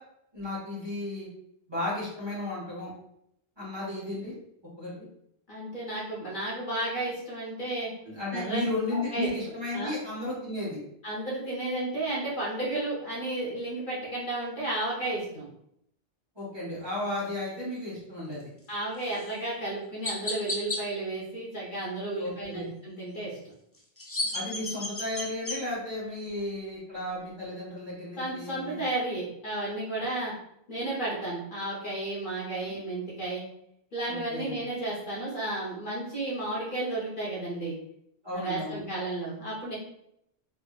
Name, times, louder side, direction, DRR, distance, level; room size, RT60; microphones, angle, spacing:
voice 1, 0.3-1.3 1.7-2.9 3.6-4.3 4.8-4.9 8.0-10.8 16.3-18.5 22.2-22.7 24.3-28.8 34.1-34.5 38.2-38.8, left 2 dB, 25° right, -8 dB, 1.5 m, -34 dB
voice 2, 5.5-7.9 8.3-8.6 8.9-9.3 9.7-9.9 11.0-15.4 18.7-23.4 28.2-30.3 30.7-33.4 33.9-37.7 38.3-39.8, right 2 dB, 55° left, -6 dB, 1.1 m, -33 dB
Chirp tweet, 19.1-19.3 20.0-20.8 23.7-25.6, left 2 dB, 25° left, 0.3 m, -32 dB
3.4 x 2.7 x 2.4 m, 0.75 s
omnidirectional pair, 1.1 m